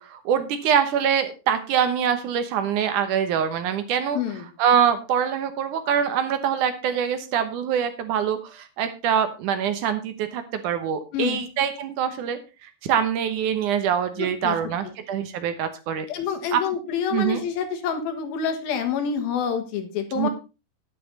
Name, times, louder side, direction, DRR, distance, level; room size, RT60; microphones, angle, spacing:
voice 1, 0.0-4.2 4.6-16.1 16.5-16.6 17.1-17.4 20.2-20.3, right 8 dB, 70° right, 10 dB, 2.3 m, -24 dB
voice 2, 4.1-4.5 11.1-11.4 14.2-14.6 14.8-14.9 16.1-20.3, left 7 dB, 85° left, 6 dB, 3.4 m, -27 dB
10.0 x 9.8 x 4.0 m, 0.29 s
omnidirectional pair, 4.1 m